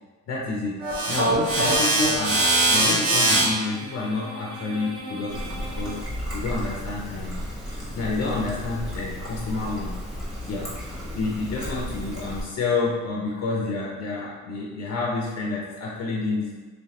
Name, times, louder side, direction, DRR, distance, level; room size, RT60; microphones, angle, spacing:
voice 1, 0.3-2.4 2.7-6.0 6.3-10.0 10.4-16.6, left 3 dB, 55° left, -4 dB, 0.7 m, -29 dB
sound 1, 0.8-6.0, right 2 dB, 55° right, 1.5 m, -24 dB
Trickle dribble, 5.3-12.4, equal, ahead, 1.3 m, -34 dB
3.2 x 3.1 x 2.9 m, 1.4 s
cardioid pair, 90°, 30 cm